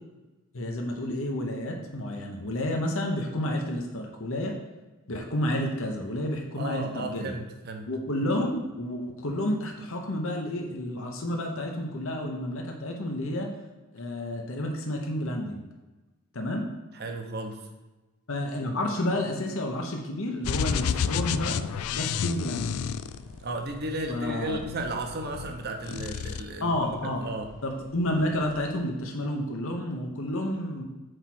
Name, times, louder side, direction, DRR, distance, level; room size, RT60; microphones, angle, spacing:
voice 1, 0.5-4.6 5.1-7.3 7.9-13.5 13.9-15.6 16.3-16.7 18.3-21.6 21.9-22.7 24.1-24.6 26.6-27.2 27.6-30.8, left 1 dB, 60° left, 1 dB, 1.0 m, -30 dB
voice 2, 6.6-7.9 16.9-17.7 23.4-27.5, right 2 dB, 45° right, 4 dB, 0.9 m, -34 dB
sound 1, 20.4-23.7 24.5-25.5 25.8-26.4, left 7 dB, 80° left, 0.4 m, -30 dB
sound 2, 21.7-28.7, equal, 75° right, 2.2 m, -52 dB
6.5 x 4.7 x 6.0 m, 1.1 s
head